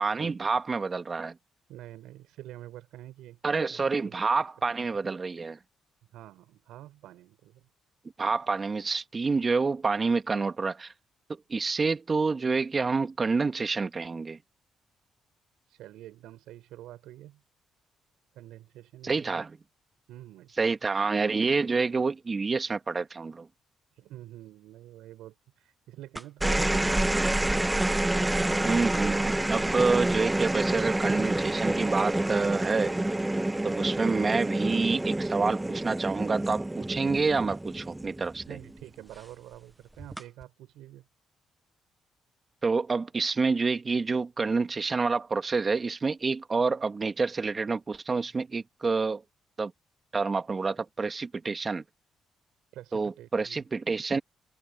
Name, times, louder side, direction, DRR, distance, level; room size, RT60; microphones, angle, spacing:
voice 1, 0.0-1.3 3.4-5.6 8.2-10.9 11.3-14.4 19.0-19.6 20.6-23.5 28.6-32.9 33.6-38.4 42.6-49.2 49.6-49.7 50.1-51.8 52.9-54.2, right 4 dB, 30° right, 1.7 m, -28 dB
voice 2, 1.7-3.4 3.7-4.2 6.1-7.7 15.7-17.4 18.3-19.4 20.1-20.7 23.9-27.4 38.4-41.1 52.7-53.6, right 14 dB, 90° right, 4.8 m, -47 dB
sound 1, 26.2-38.8 40.0-40.4, right 1 dB, 10° right, 0.9 m, -28 dB
open air
cardioid pair, 90°, 0 cm